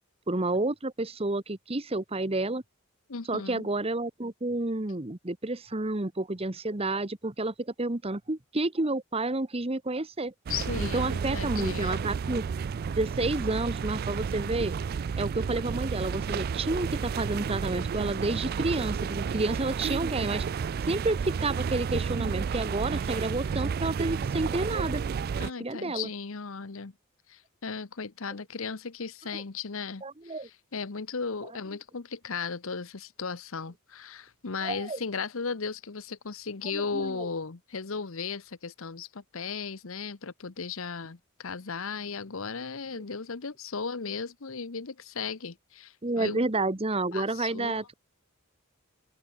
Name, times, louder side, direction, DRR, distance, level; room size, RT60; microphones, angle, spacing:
voice 1, 0.3-2.6 3.3-10.3 10.8-12.4 12.9-14.7 15.2-20.4 20.9-25.0 25.4-26.1 29.3-29.4 30.0-30.5 34.6-35.0 36.7-37.3 46.0-47.9, right 2 dB, 25° right, 1.2 m, -30 dB
voice 2, 3.1-3.7 10.5-12.1 25.4-26.9 27.3-46.5 47.1-47.8, left 5 dB, 65° left, 1.0 m, -36 dB
sound 1, 10.5-25.5, right 6 dB, 45° right, 0.3 m, -31 dB
head